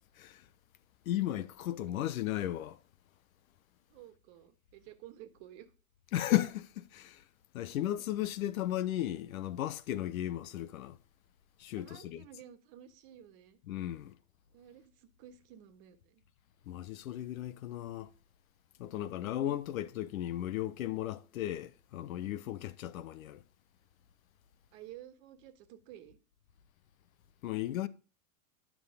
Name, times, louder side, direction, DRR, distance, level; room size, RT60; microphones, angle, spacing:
voice 1, 1.1-2.8 6.1-7.2 7.5-11.0 11.6-12.2 13.7-14.1 16.7-18.1 18.8-23.4 27.4-27.9, left 13 dB, 65° left, 0.8 m, -35 dB
voice 2, 3.9-5.7 7.7-7.8 11.7-13.6 14.5-16.2 18.9-19.3 22.2-22.6 24.7-26.2, right 11 dB, 50° right, 1.5 m, -53 dB
10.5 x 6.1 x 4.9 m
hypercardioid pair, 105°, 44 cm